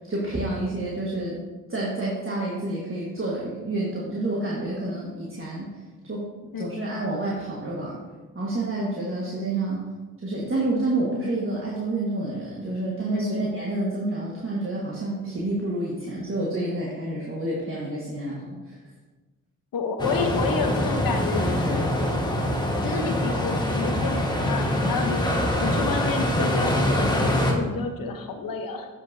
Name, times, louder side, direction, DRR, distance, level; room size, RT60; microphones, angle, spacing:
voice 1, 0.1-1.4 1.7-5.7 6.0-6.2 6.6-8.0 8.3-9.8 10.2-18.8, right 2 dB, 35° right, -5 dB, 1.5 m, -29 dB
voice 2, 13.1-13.4 19.7-21.9 22.8-25.2 25.6-28.9, left 4 dB, 75° left, 5 dB, 0.9 m, -29 dB
sound 1, 20.0-27.5, left 1 dB, 10° left, 1.3 m, -24 dB
7.7 x 5.9 x 2.7 m, 1.2 s
supercardioid pair, 45°, 35 cm